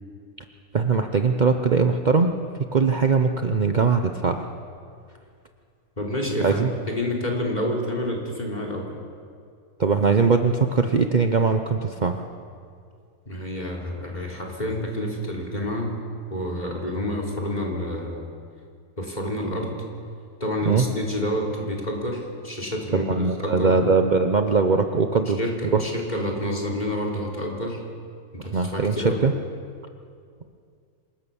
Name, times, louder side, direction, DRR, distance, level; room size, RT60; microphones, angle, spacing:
voice 1, 0.7-2.3 2.7-4.5 6.4-6.7 9.8-12.2 20.7-20.8 22.9-25.4 28.5-29.3, right 4 dB, 55° right, 6 dB, 0.5 m, -21 dB
voice 2, 6.0-8.9 13.3-16.0 16.3-18.3 19.0-19.8 20.4-23.8 25.4-27.8 28.3-29.2, left 1 dB, 20° left, 0 dB, 3.6 m, -28 dB
26.5 x 17.5 x 7.1 m, 2.3 s
omnidirectional pair, 2.0 m